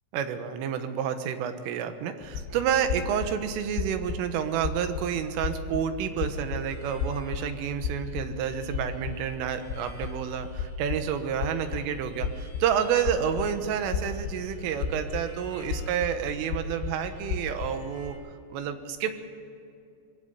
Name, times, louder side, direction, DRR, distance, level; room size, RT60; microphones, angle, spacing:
voice 1, 0.1-19.1, right 8 dB, 90° right, 8 dB, 3.8 m, -29 dB
sound 1, 2.2-18.1, left 5 dB, 90° left, 3.7 m, -35 dB
Harmonica, 6.2-18.2, left 2 dB, 15° left, 2.4 m, -56 dB
22.0 x 16.0 x 8.2 m, 2.5 s
omnidirectional pair, 5.7 m